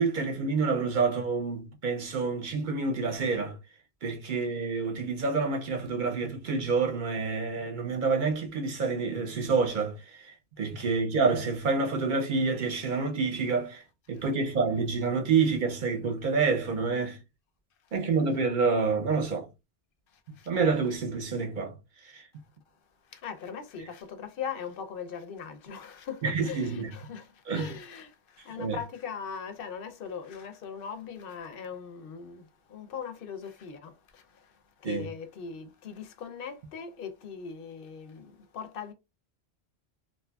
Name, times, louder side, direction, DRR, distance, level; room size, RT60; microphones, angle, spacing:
voice 1, 0.0-3.6 4.0-17.2 17.9-19.5 20.5-21.7 22.0-22.3 26.2-26.9 27.5-27.7 28.6-28.8 34.8-35.1, right 4 dB, 55° right, 0.7 m, -28 dB
voice 2, 20.1-20.5 23.0-38.9, left 7 dB, 65° left, 0.7 m, -40 dB
2.7 x 2.4 x 2.2 m
omnidirectional pair, 1.1 m